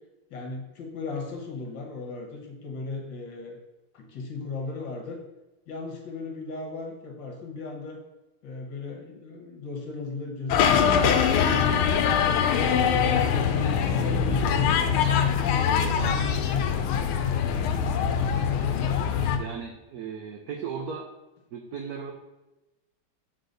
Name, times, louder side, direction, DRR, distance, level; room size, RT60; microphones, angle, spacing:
voice 1, 0.3-3.6 3.9-5.2 5.7-8.0 8.4-11.3 11.7-15.0 15.4-17.2 17.8-18.4, left 3 dB, 65° left, 1 dB, 1.7 m, -37 dB
sound 1, 10.5-19.4, left 7 dB, 80° left, 1.5 m, -23 dB
voice 2, 19.4-21.1 21.5-22.1, right 6 dB, 80° right, 2 dB, 0.8 m, -36 dB
6.5 x 4.0 x 3.9 m, 1.0 s
omnidirectional pair, 2.3 m